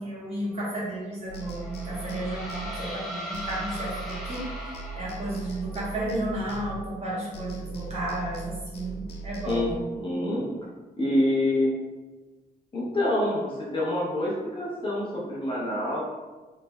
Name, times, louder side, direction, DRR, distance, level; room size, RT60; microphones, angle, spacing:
voice 1, 0.0-9.7, right 1 dB, 40° right, -6 dB, 1.0 m, -33 dB
sound 1, 1.3-3.1 3.3-7.1 7.3-9.7, right 3 dB, 90° left, 0.4 m, -39 dB
sound 2, 1.3-5.6, equal, ahead, 0.6 m, -38 dB
voice 2, 9.4-10.5 11.0-11.7 12.7-16.0, left 1 dB, 30° left, -6 dB, 0.8 m, -26 dB
3.3 x 3.1 x 2.2 m, 1.2 s
wide cardioid pair, 165°, 17 cm